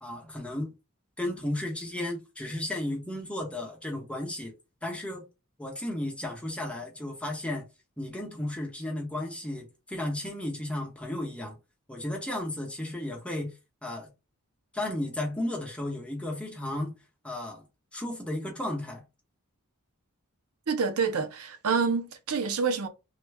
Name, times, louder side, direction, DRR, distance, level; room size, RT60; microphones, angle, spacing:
voice 1, 0.0-0.7 1.2-4.5 4.8-5.2 5.6-7.6 8.0-11.5 11.9-13.5 13.8-14.1 14.7-16.9 17.2-17.6 17.9-19.0, left 1 dB, 5° left, 0.9 m, -34 dB
voice 2, 20.7-22.9, right 5 dB, 85° right, 0.6 m, -27 dB
3.2 x 2.2 x 3.4 m
head